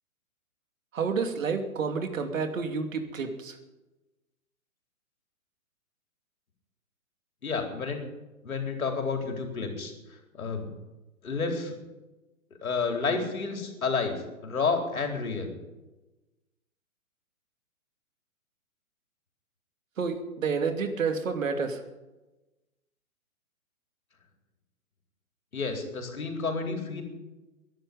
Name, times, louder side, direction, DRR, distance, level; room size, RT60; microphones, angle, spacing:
voice 1, 0.9-3.6 20.0-21.8, right 5 dB, 65° right, 6 dB, 2.8 m, -29 dB
voice 2, 7.4-8.0 8.4-9.9 10.3-10.7 11.2-11.7 12.6-15.5 25.5-27.0, left 4 dB, 75° left, 3 dB, 4.2 m, -30 dB
22.0 x 11.5 x 5.4 m, 1.1 s
figure-of-eight pair, 125°, 42 cm